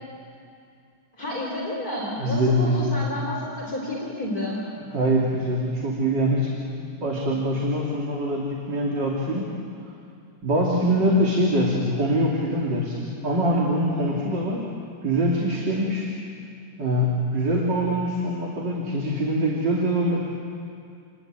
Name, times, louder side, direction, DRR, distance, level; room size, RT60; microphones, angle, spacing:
voice 1, 1.2-4.6, left 1 dB, 45° left, -3 dB, 4.5 m, -30 dB
voice 2, 2.2-3.1 4.9-9.6 10.4-14.7 15.0-16.1 16.8-20.3, equal, 55° right, -3 dB, 3.4 m, -24 dB
29.0 x 21.0 x 9.0 m, 2.4 s
omnidirectional pair, 2.3 m